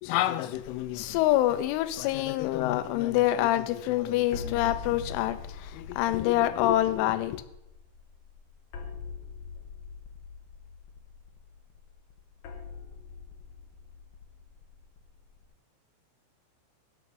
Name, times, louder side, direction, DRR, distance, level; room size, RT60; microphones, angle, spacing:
voice 1, 0.0-7.4, left 14 dB, 90° left, 3.1 m, -26 dB
sound 1, 0.5-15.4, left 5 dB, 70° left, 2.2 m, -45 dB
15.5 x 6.1 x 5.3 m
omnidirectional pair, 5.5 m